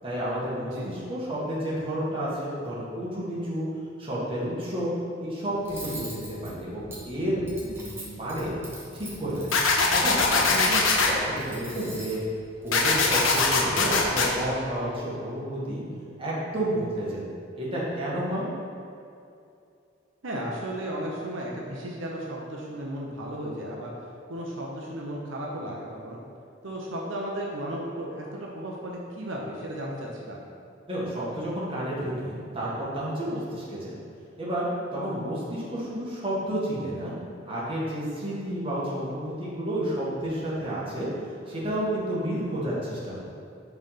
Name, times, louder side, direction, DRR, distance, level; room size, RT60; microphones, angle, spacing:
voice 1, 0.0-3.7 4.0-4.9 5.2-8.5 8.9-9.6 9.9-12.2 12.6-15.8 16.2-17.2 17.6-18.5 30.9-33.9 34.4-34.7 34.9-37.1 37.5-41.1 41.5-43.2, right 1 dB, 30° right, -7 dB, 1.4 m, -31 dB
voice 2, 0.7-1.0 10.4-10.9 20.2-23.9 24.3-26.2 26.6-30.4, right 1 dB, 80° right, -3 dB, 0.8 m, -35 dB
Cutlery silverware, 5.6-14.3, right 1 dB, 15° right, 1.0 m, -42 dB
sound 1, 9.5-11.1 12.7-14.3, left 4 dB, 90° left, 0.7 m, -22 dB
5.3 x 3.5 x 5.6 m, 2.5 s
head